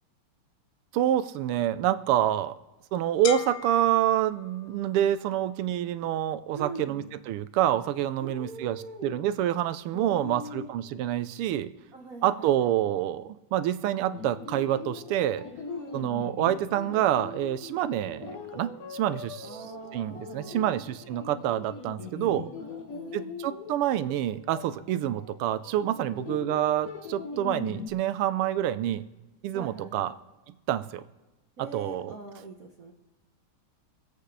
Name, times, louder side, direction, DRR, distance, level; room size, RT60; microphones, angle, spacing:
voice 1, 0.9-2.5 2.9-11.7 12.2-15.4 15.9-19.5 19.9-22.5 23.1-29.0 29.4-30.1 30.7-31.0 31.6-32.1, right 12 dB, 90° right, 13 dB, 1.6 m, -27 dB
sound 1, 3.2-5.1, left 12 dB, 85° left, 1.6 m, -34 dB
voice 2, 6.5-7.1 8.2-9.2 9.9-10.7 11.9-12.5 15.7-16.2 19.4-20.8 22.1-23.5 26.0-26.4 29.5-30.2 31.6-32.9, right 2 dB, 45° right, -1 dB, 1.5 m, -43 dB
sound 2, 14.1-27.9, left 5 dB, 50° left, 1.2 m, -41 dB
24.5 x 8.4 x 3.3 m, 1.1 s
omnidirectional pair, 2.4 m